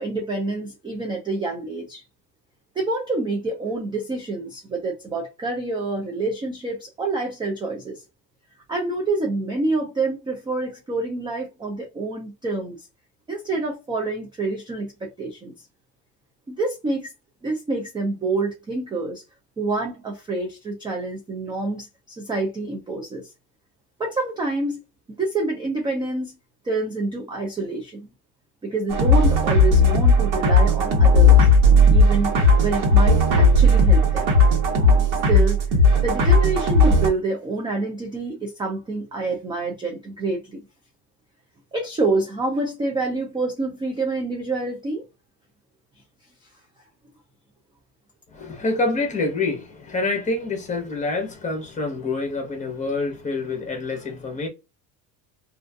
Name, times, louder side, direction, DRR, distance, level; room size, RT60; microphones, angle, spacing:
voice 1, 0.0-2.0 2.8-8.0 8.7-12.8 13.3-15.5 16.5-17.1 17.4-19.2 19.6-23.2 24.0-24.8 25.1-26.3 26.6-28.1 28.6-31.5 31.9-32.3 32.6-34.3 35.3-35.6 36.0-40.6 41.7-45.0, right 3 dB, 10° right, 0.4 m, -27 dB
sound 1, 28.9-37.1, left 1 dB, 85° right, 1.2 m, -16 dB
voice 2, 48.3-54.5, left 3 dB, 20° left, 1.0 m, -26 dB
2.6 x 2.4 x 2.2 m
cardioid pair, 130°, 40 cm